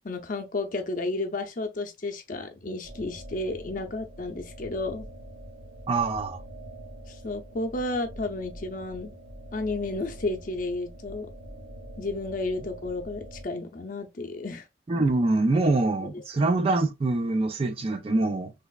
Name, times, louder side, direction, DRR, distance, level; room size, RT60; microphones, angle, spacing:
voice 1, 0.0-5.1 7.1-9.1 9.5-11.3 12.0-14.6 15.5-15.7, left 2 dB, 50° left, 0.6 m, -32 dB
sound 1, 2.8-13.4, right 1 dB, 75° right, 1.2 m, -44 dB
voice 2, 5.9-6.4 14.9-18.5, right 2 dB, 35° right, 0.4 m, -24 dB
3.3 x 3.0 x 2.3 m
head